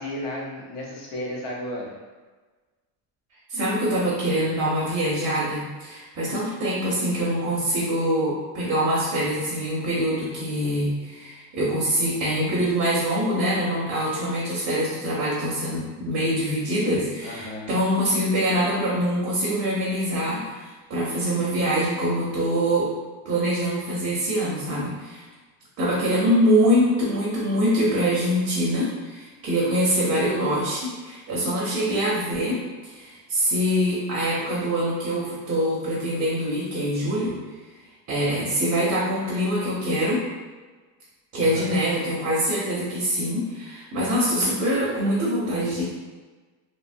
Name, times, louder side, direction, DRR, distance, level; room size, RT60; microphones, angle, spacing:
voice 1, 0.0-2.0 17.2-17.8 41.4-41.9, left 1 dB, 70° left, -3 dB, 0.8 m, -34 dB
voice 2, 3.5-22.9 23.2-25.3 25.8-32.6 32.8-37.3 38.1-40.2 41.3-45.8, equal, 30° right, -6 dB, 0.5 m, -24 dB
2.8 x 2.1 x 2.5 m, 1.3 s
cardioid pair, 160°, 46 cm